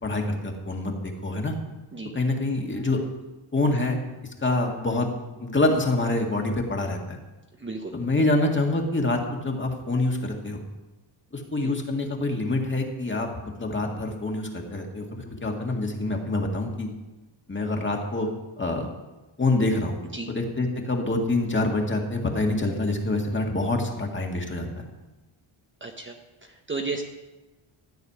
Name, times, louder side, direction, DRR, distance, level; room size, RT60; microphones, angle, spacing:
voice 1, 0.0-1.6 2.1-3.0 3.5-4.0 4.4-5.1 5.4-7.2 7.9-10.6 11.3-16.9 17.5-18.3 18.6-18.9 19.4-20.0 20.3-24.9, left 2 dB, 25° left, 1 dB, 1.8 m, -26 dB
voice 2, 7.6-7.9 11.6-11.7 20.1-20.3 25.8-26.1 26.4-27.0, right 3 dB, 25° right, 2 dB, 1.0 m, -33 dB
13.5 x 6.5 x 9.7 m, 1.1 s
wide cardioid pair, 160°, 48 cm